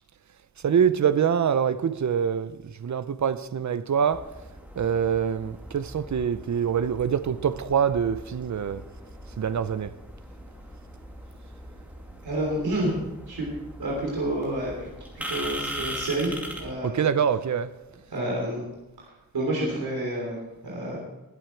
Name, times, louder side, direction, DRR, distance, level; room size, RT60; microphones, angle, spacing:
voice 1, 0.6-4.3 4.7-8.9 9.4-10.0 16.8-17.8, right 7 dB, 50° right, 0.6 m, -25 dB
sound 1, 4.1-16.7, equal, 5° right, 2.5 m, -40 dB
voice 2, 12.2-12.9 13.3-13.5 13.8-14.7 15.1-16.3 16.6-17.1 18.1-18.6 19.3-21.0, right 1 dB, 85° right, 3.5 m, -29 dB
20.5 x 7.9 x 4.6 m
wide cardioid pair, 125°, 37 cm